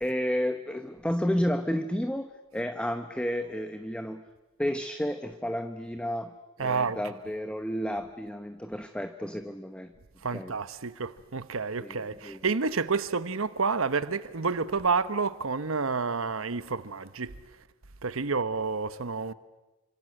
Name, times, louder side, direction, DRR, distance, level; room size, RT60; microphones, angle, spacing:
voice 1, 0.0-4.2 4.6-6.3 6.6-9.9 10.3-10.5 11.8-12.0 12.2-12.4, equal, 5° left, 1.0 m, -31 dB
voice 2, 6.6-7.0 10.2-17.4 18.0-19.3, right 4 dB, 80° right, 1.0 m, -29 dB
28.0 x 26.0 x 7.8 m
head